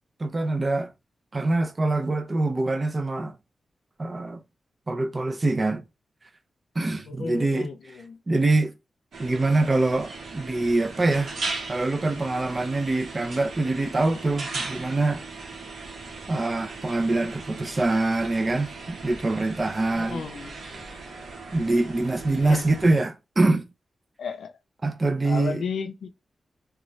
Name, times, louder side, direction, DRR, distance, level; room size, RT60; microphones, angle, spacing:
voice 1, 0.2-0.9 1.3-3.4 4.0-4.4 4.9-5.8 6.8-7.7 8.3-8.7 9.2-11.4 11.7-15.2 16.3-20.2 21.5-23.7 24.8-25.7, right 2 dB, 30° right, 0.5 m, -24 dB
voice 2, 7.0-8.2 19.9-20.5 22.4-22.7 24.2-24.5 25.2-26.1, left 5 dB, 90° left, 0.4 m, -33 dB
sound 1, 9.1-22.9, right 3 dB, 80° right, 0.9 m, -38 dB
2.6 x 2.3 x 3.0 m
wide cardioid pair, 90°, 0 cm